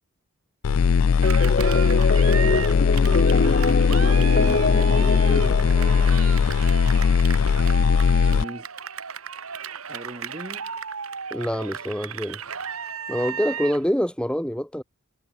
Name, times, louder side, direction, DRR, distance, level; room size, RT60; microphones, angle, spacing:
sound 1, 0.6-8.4, left 6 dB, 85° left, 0.4 m, -19 dB
sound 2, 1.2-6.4, left 2 dB, 45° left, 1.9 m, -25 dB
Cheering, 1.2-13.9, right 6 dB, 85° right, 2.2 m, -34 dB
voice 1, 3.9-6.4 8.2-8.7 9.9-10.7, right 1 dB, 30° right, 4.4 m, -37 dB
voice 2, 11.3-12.4 13.1-14.8, equal, 5° left, 2.9 m, -25 dB
head